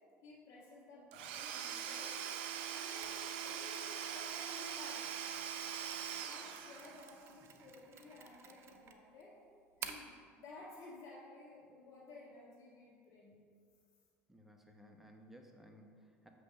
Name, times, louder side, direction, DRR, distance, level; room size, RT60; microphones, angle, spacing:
voice 1, 0.2-2.2 2.7-5.2 6.1-9.4 9.8-13.4, left 2 dB, 60° left, -10 dB, 1.8 m, -55 dB
Domestic sounds home sounds / Tools, 1.1-7.2, right 8 dB, 85° right, 0.4 m, -42 dB
Mechanisms, 3.0-10.2, right 7 dB, 50° right, 0.6 m, -53 dB
voice 2, 14.3-16.3, equal, 5° right, 2 dB, 0.9 m, -58 dB
7.4 x 3.2 x 5.8 m, 2.1 s
supercardioid pair, 85°, 6 cm